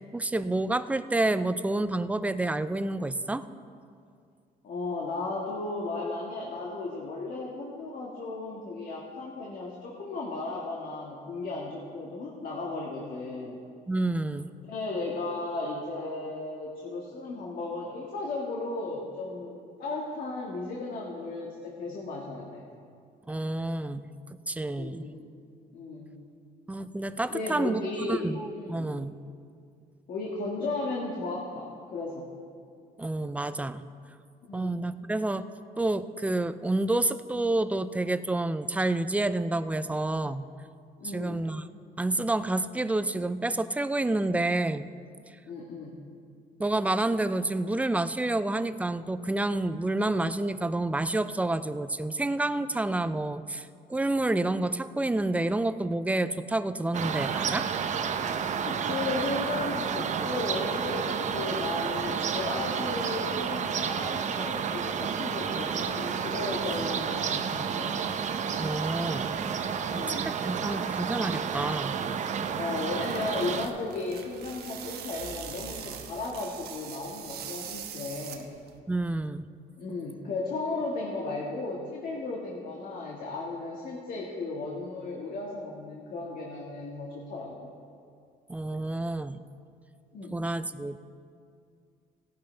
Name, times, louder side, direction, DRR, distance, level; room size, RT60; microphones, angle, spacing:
voice 1, 0.1-3.5 13.9-14.5 23.3-24.1 24.5-25.0 26.7-29.1 33.0-33.9 34.5-35.5 35.8-40.5 41.0-41.7 42.0-44.9 45.3-45.4 46.6-57.7 68.6-69.4 69.9-72.0 78.9-79.5 88.5-89.4 90.3-91.0, right 2 dB, 10° right, 12 dB, 0.4 m, -29 dB
voice 2, 4.6-13.6 14.7-22.7 24.7-25.2 25.7-26.1 27.3-28.9 30.1-32.3 34.4-34.8 41.0-41.4 45.5-46.0 58.6-67.9 69.9-70.3 72.5-78.5 79.8-87.7 90.1-90.3, left 3 dB, 55° left, -2 dB, 1.7 m, -35 dB
sound 1, 56.9-73.7, right 7 dB, 45° right, 0.7 m, -30 dB
sound 2, 72.6-78.8, right 8 dB, 70° right, 1.1 m, -42 dB
17.0 x 11.0 x 3.3 m, 2.3 s
cardioid pair, 110°, 17 cm